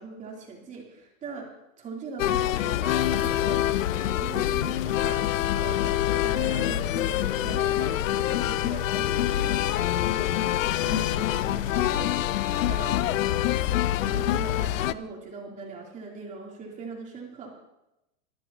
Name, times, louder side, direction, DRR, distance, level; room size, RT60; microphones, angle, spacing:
voice 1, 0.0-1.5 1.8-3.6 3.9-5.2 5.5-13.0 13.3-13.7 13.9-17.6, right 4 dB, 20° right, -1 dB, 3.4 m, -40 dB
sound 1, 2.2-14.9, left 13 dB, 70° left, 0.7 m, -25 dB
24.0 x 13.5 x 3.0 m, 0.91 s
supercardioid pair, 160°, 40 cm